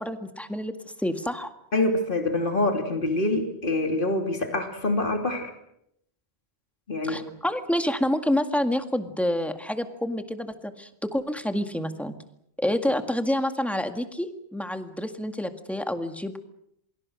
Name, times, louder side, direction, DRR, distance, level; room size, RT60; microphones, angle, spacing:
voice 1, 0.0-1.5 7.0-12.1 12.6-16.4, left 1 dB, ahead, 7 dB, 1.9 m, -28 dB
voice 2, 1.7-5.5 6.9-7.2, left 2 dB, 50° left, 4 dB, 3.3 m, -25 dB
27.5 x 24.0 x 6.4 m, 0.75 s
omnidirectional pair, 1.1 m